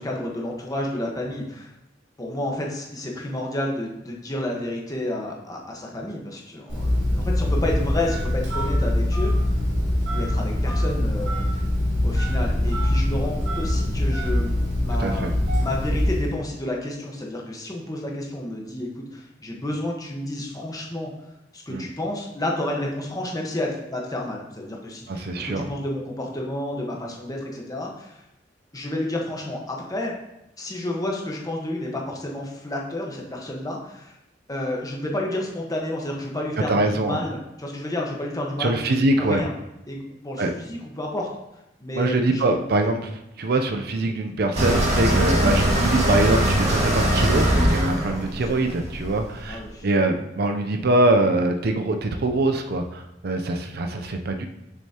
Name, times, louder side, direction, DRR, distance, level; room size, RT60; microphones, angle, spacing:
voice 1, 0.0-1.7 2.2-9.3 10.1-11.6 12.0-14.5 14.8-21.1 21.5-28.2 28.7-30.1 30.6-34.1 34.5-38.8 39.2-39.5 39.9-41.3 41.8-42.6 45.2-45.4 47.9-48.4 49.5-49.9, left 1 dB, 20° left, -1 dB, 1.2 m, -30 dB
Telephone, 6.7-16.4, left 1 dB, 80° right, 2.6 m, -23 dB
voice 2, 15.0-15.3 21.7-21.8 25.1-25.7 36.7-37.2 38.6-39.4 40.4-40.5 41.9-54.5, right 2 dB, 60° right, 5 dB, 0.5 m, -23 dB
sound 1, 44.6-49.5, equal, 35° right, 1.7 m, -21 dB
7.0 x 6.2 x 2.8 m, 0.86 s
head